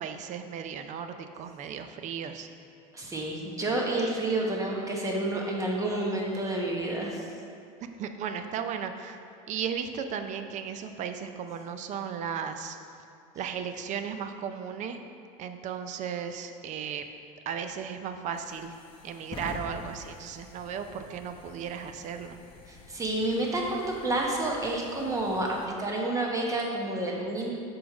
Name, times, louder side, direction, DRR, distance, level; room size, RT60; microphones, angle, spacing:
voice 1, 0.0-2.5 7.8-9.2 9.5-12.8 13.3-15.0 15.4-17.1 17.5-18.7 19.0-22.4, right 7 dB, 40° right, 8 dB, 0.5 m, -35 dB
voice 2, 2.9-7.2 22.7-27.6, right 2 dB, 20° right, -1 dB, 1.1 m, -29 dB
sound 1, 18.0-25.7, left 3 dB, 30° left, 0.8 m, -48 dB
6.1 x 4.7 x 4.8 m, 2.5 s
supercardioid pair, 125°, 18 cm